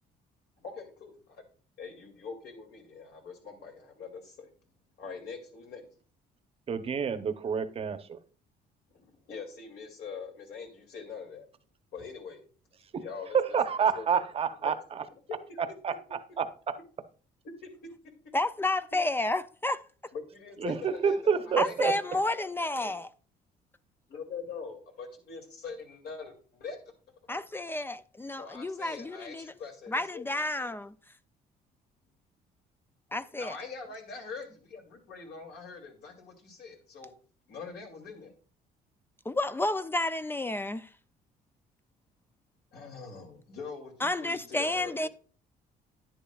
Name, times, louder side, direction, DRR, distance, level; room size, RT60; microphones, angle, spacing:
voice 1, 0.6-1.1 1.8-4.5 5.0-5.9 8.9-11.4 11.9-12.4 13.0-14.2 14.6-14.7 15.3-15.6 17.6-17.7 20.1-21.7 22.1-22.9 24.1-26.8 27.3-27.4 28.4-30.3 33.3-37.1 37.5-38.3 42.7-45.1, left 5 dB, 75° left, 2.7 m, -43 dB
voice 2, 6.7-8.2 12.9-13.0 13.3-15.0 15.8-15.9 16.4-16.8 20.6-21.9, right 6 dB, 35° right, 0.8 m, -28 dB
voice 3, 18.3-19.8 21.6-23.1 27.3-29.5 29.9-30.9 33.1-33.6 39.3-40.9 44.0-45.1, left 2 dB, 15° left, 0.3 m, -31 dB
10.5 x 9.5 x 2.4 m
cardioid pair, 110°, 17 cm